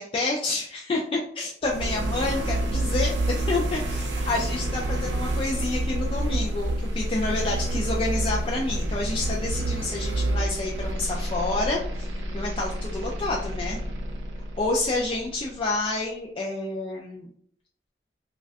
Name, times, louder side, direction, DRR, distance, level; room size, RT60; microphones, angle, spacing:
voice 1, 0.0-11.8 12.3-13.8 14.6-17.3, left 2 dB, 30° left, -3 dB, 0.3 m, -29 dB
sound 1, 1.6-15.5, right 1 dB, 90° right, 0.6 m, -28 dB
2.5 x 2.2 x 3.4 m, 0.62 s
head